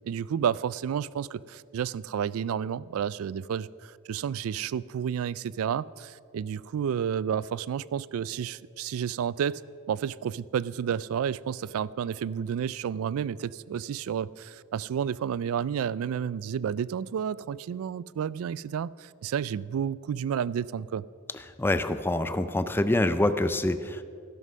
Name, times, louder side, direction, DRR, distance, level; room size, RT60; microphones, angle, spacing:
voice 1, 0.1-9.6 9.9-21.0, right 8 dB, 70° right, 20 dB, 0.3 m, -31 dB
voice 2, 21.6-24.0, left 1 dB, 10° left, 11 dB, 0.4 m, -25 dB
12.5 x 11.5 x 5.5 m, 2.4 s
head